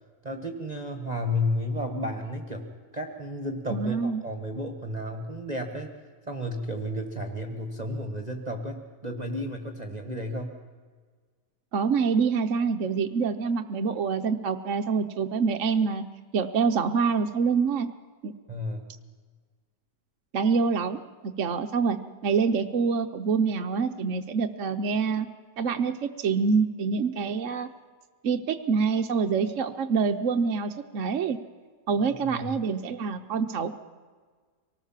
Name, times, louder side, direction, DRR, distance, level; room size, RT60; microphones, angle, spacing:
voice 1, 0.2-2.7 2.9-5.9 6.3-10.5 18.5-18.9 32.2-32.5, left 1 dB, 25° right, 4 dB, 1.6 m, -32 dB
voice 2, 3.7-4.2 11.7-16.0 16.3-17.9 18.2-18.3 20.3-21.0 21.2-22.0 22.2-25.3 25.6-27.7 28.2-31.4 31.9-33.7, right 5 dB, 55° right, 6 dB, 1.0 m, -26 dB
25.5 x 18.5 x 7.4 m, 1.5 s
omnidirectional pair, 1.9 m